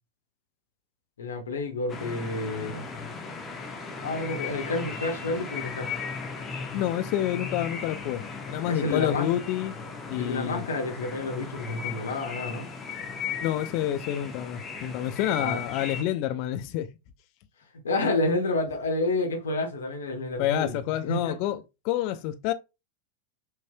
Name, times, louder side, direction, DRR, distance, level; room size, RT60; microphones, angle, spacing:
voice 1, 1.2-2.8 4.0-5.9 8.6-9.3 10.2-12.7 15.4-15.6 17.8-20.8 21.0-21.3, left 2 dB, 65° left, 1.1 m, -29 dB
sound 1, 1.9-16.0, left 5 dB, 25° left, 1.0 m, -37 dB
voice 2, 6.7-8.2 8.5-9.7 10.1-10.6 13.4-16.9 20.4-22.5, left 12 dB, 45° left, 0.6 m, -28 dB
6.5 x 3.2 x 2.2 m
figure-of-eight pair, 90°, 0 cm